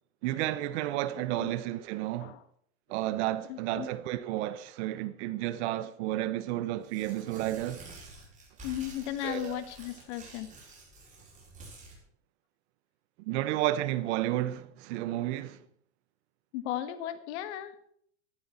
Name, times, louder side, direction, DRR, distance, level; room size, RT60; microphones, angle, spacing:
voice 1, 0.2-2.4 2.9-7.8 9.2-9.6 13.2-15.6, right 14 dB, 65° right, 1.2 m, -32 dB
voice 2, 3.5-3.9 8.6-10.5 16.5-17.7, left 12 dB, 70° left, 1.6 m, -36 dB
Tearing, 6.8-12.0, right 2 dB, 20° right, 6.2 m, -49 dB
13.5 x 13.5 x 4.4 m
supercardioid pair, 125°, 36 cm